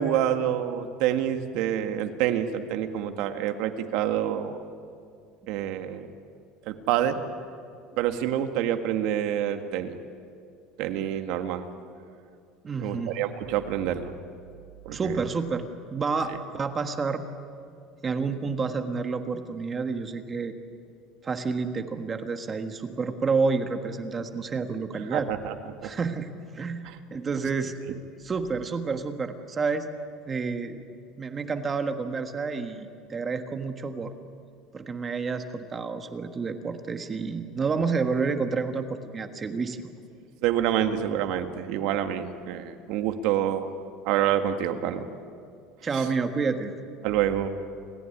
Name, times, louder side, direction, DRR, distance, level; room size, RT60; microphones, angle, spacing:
voice 1, 0.0-4.6 5.5-6.1 6.7-7.2 8.0-10.0 10.8-11.7 12.8-14.1 14.9-15.2 25.1-25.5 25.8-25.9 40.4-43.7 44.0-45.1 46.0-46.1 47.0-47.5, right 10 dB, 65° right, 7 dB, 1.8 m, -27 dB
voice 2, 12.6-13.2 14.9-17.2 18.0-20.5 21.2-25.3 25.8-26.3 26.5-28.0 28.2-29.9 30.3-30.8 31.2-34.1 34.7-39.9 45.8-46.7, right 4 dB, 20° right, 7 dB, 1.5 m, -29 dB
28.0 x 15.0 x 10.0 m, 2.3 s
cardioid pair, 155°, 0 cm